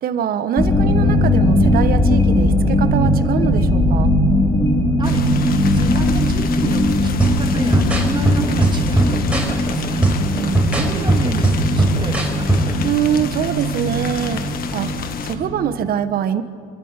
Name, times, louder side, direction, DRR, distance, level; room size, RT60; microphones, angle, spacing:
voice 1, 0.0-4.1 10.3-11.2 12.8-14.9 15.2-16.4, right 9 dB, 60° right, 11 dB, 1.3 m, -23 dB
sound 1, 0.6-15.8, left 1 dB, 20° left, 3.9 m, -19 dB
sound 2, 5.0-15.4, left 8 dB, 60° left, 1.5 m, -30 dB
voice 2, 5.0-5.3 5.7-10.0 10.7-12.5, right 3 dB, 25° right, 3 dB, 3.0 m, -30 dB
sound 3, 7.2-12.8, right 1 dB, 5° right, 4.3 m, -19 dB
27.0 x 12.5 x 9.8 m, 2.2 s
cardioid pair, 110°, 17 cm